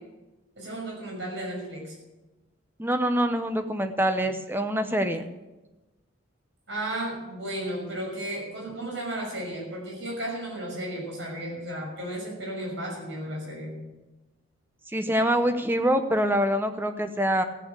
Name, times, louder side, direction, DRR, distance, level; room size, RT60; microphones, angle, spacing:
voice 1, 0.6-1.9 6.7-13.8, right 1 dB, 60° right, -2 dB, 6.4 m, -34 dB
voice 2, 2.8-5.2 14.9-17.4, equal, 10° right, 8 dB, 0.9 m, -25 dB
14.5 x 8.7 x 8.3 m, 1.1 s
head